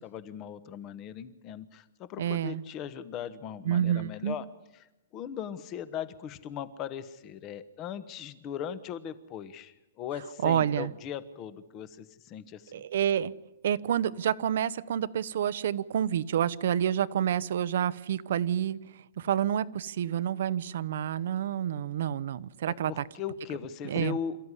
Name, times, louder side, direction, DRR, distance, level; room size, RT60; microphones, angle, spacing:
voice 1, 0.0-4.5 5.1-12.7 22.9-24.4, left 8 dB, 20° left, 14 dB, 1.1 m, -38 dB
voice 2, 2.2-2.6 3.6-4.4 10.4-10.9 12.7-13.3 13.6-18.8 19.2-23.1 23.8-24.2, right 10 dB, 55° right, 17 dB, 0.8 m, -28 dB
28.0 x 14.0 x 9.9 m, 1.0 s
hypercardioid pair, 170°, 0 cm